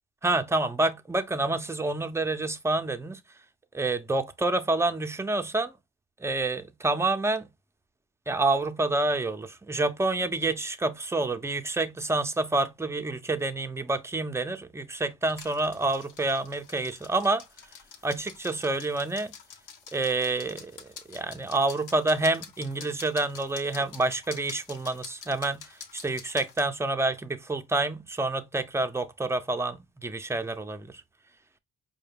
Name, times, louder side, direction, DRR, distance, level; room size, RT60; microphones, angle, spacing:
voice 1, 0.2-3.2 3.7-5.7 6.2-7.5 8.3-17.4 18.0-19.3 19.9-25.7 25.9-31.0, right 2 dB, 10° right, 0.5 m, -28 dB
sound 1, 15.3-26.7, left 6 dB, 90° left, 0.8 m, -47 dB
4.7 x 2.2 x 3.4 m
cardioid pair, 90°, 30 cm